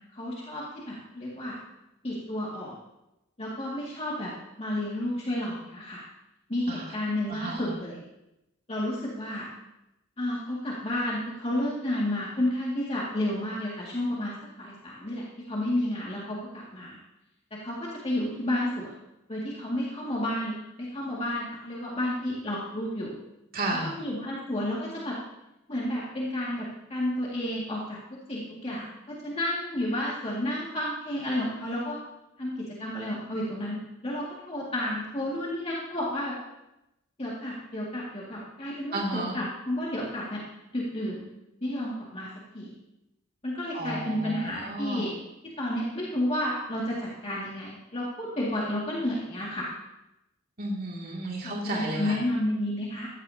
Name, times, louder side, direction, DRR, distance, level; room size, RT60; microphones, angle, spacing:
voice 1, 0.1-1.6 2.0-2.8 3.4-4.3 4.6-6.0 6.5-8.0 8.7-9.5 10.2-14.3 14.6-17.0 17.5-19.0 19.3-23.2 24.0-25.2 25.7-32.0 32.4-36.3 37.2-40.4 40.7-41.2 41.6-42.3 42.5-42.7 43.4-45.1 45.6-49.7 51.4-53.1, left 1 dB, 30° left, -5 dB, 2.2 m, -31 dB
voice 2, 7.3-7.7 23.5-23.9 38.9-39.4 43.7-45.0 50.6-52.2, right 1 dB, 50° right, -3 dB, 2.5 m, -32 dB
16.0 x 14.0 x 2.8 m, 0.92 s
head